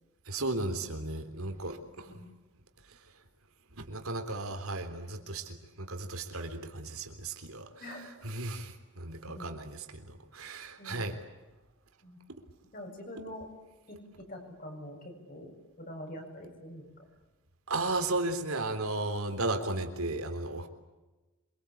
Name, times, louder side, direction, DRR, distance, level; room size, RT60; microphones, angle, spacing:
voice 1, 0.3-2.1 3.8-7.7 8.2-11.2 17.7-20.7, right 2 dB, 85° right, 6 dB, 3.6 m, -35 dB
voice 2, 7.8-8.1 9.3-9.5 10.8-11.1 12.0-12.2 12.7-13.5 13.9-15.5 15.8-16.8, left 1 dB, 40° left, 2 dB, 7.3 m, -44 dB
26.5 x 24.5 x 8.7 m, 1.1 s
head